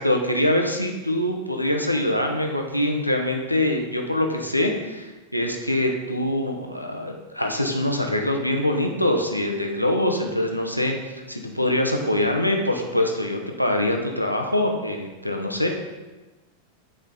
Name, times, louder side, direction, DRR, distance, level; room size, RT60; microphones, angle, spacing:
voice 1, 0.0-15.7, left 1 dB, 90° left, 2 dB, 0.9 m, -24 dB
8.8 x 4.8 x 4.0 m, 1.2 s
figure-of-eight pair, 90°, 0 cm